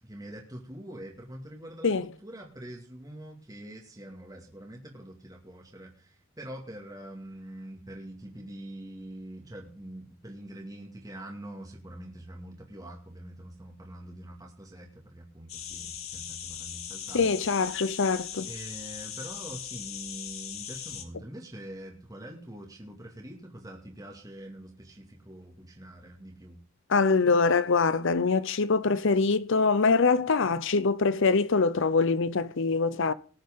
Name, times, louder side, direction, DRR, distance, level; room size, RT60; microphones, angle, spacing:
voice 1, 0.0-17.4 18.4-26.6, right 1 dB, 20° right, 2.2 m, -44 dB
sound 1, 15.5-21.0, left 9 dB, 85° left, 2.0 m, -39 dB
voice 2, 17.1-18.5 26.9-33.1, left 4 dB, 65° left, 0.7 m, -24 dB
19.5 x 7.8 x 3.7 m
head